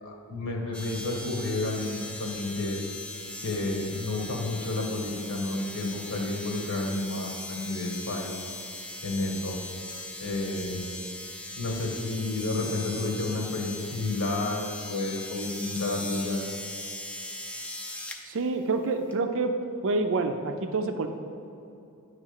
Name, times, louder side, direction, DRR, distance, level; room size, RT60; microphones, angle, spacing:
voice 1, 0.0-2.8 3.4-8.5 9.0-9.6 10.2-10.8 11.6-16.4, left 2 dB, 70° left, 0 dB, 1.2 m, -31 dB
sound 1, 0.7-18.2 19.1-19.2, left 2 dB, 5° left, 0.5 m, -39 dB
voice 2, 18.2-19.6 19.8-21.1, right 3 dB, 65° right, 7 dB, 0.5 m, -27 dB
9.6 x 3.2 x 6.5 m, 2.8 s
head